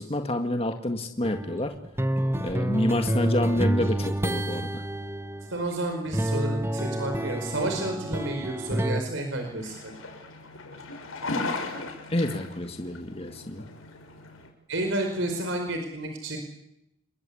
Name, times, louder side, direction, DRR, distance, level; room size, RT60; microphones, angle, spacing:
voice 1, 0.0-1.7 2.4-4.8 12.1-13.7, left 1 dB, 30° left, 6 dB, 1.9 m, -28 dB
sound 1, 1.2-5.7 6.1-9.0, right 1 dB, 10° right, 1.3 m, -28 dB
voice 2, 5.5-9.9 14.7-16.4, right 1 dB, 65° right, 4 dB, 4.8 m, -30 dB
sound 2, 9.4-14.5, left 3 dB, 85° left, 6.0 m, -37 dB
29.0 x 23.0 x 8.6 m, 0.84 s
head